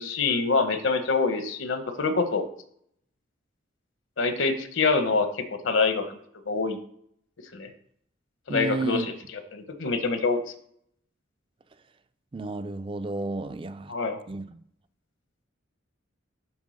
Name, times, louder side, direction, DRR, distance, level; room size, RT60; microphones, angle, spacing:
voice 1, 0.0-2.4 4.2-6.0 6.5-6.8 7.5-7.7 8.5-9.1 9.5-10.4 13.9-14.2, left 4 dB, 70° left, 8 dB, 0.9 m, -25 dB
voice 2, 8.5-9.1 12.3-13.9 14.3-14.6, right 3 dB, 25° right, 13 dB, 0.4 m, -32 dB
7.3 x 4.3 x 6.4 m, 0.66 s
head